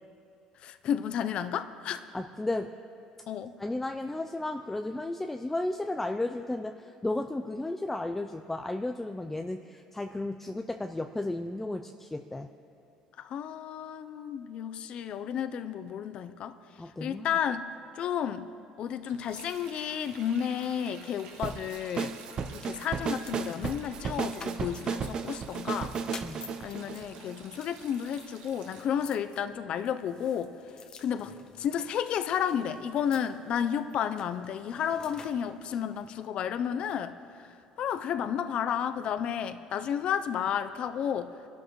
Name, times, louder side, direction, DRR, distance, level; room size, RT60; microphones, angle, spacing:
voice 1, 0.6-2.0 3.3-3.5 13.2-16.5 17.0-17.6 18.0-18.5 18.8-22.2 22.5-25.9 26.6-30.5 31.0-37.5 37.8-41.3, left 8 dB, 55° left, 10 dB, 0.6 m, -32 dB
voice 2, 2.1-2.7 3.6-12.5 16.8-17.3 26.2-26.4, left 2 dB, 10° left, 5 dB, 0.5 m, -34 dB
Sink (filling or washing), 19.0-29.1, right 5 dB, 85° right, 1.3 m, -51 dB
sound 1, 21.3-36.2, left 5 dB, 40° left, 1.0 m, -52 dB
sound 2, 21.4-27.7, right 5 dB, 45° right, 0.6 m, -34 dB
25.5 x 12.5 x 3.1 m, 2.6 s
cardioid pair, 105°, 2 cm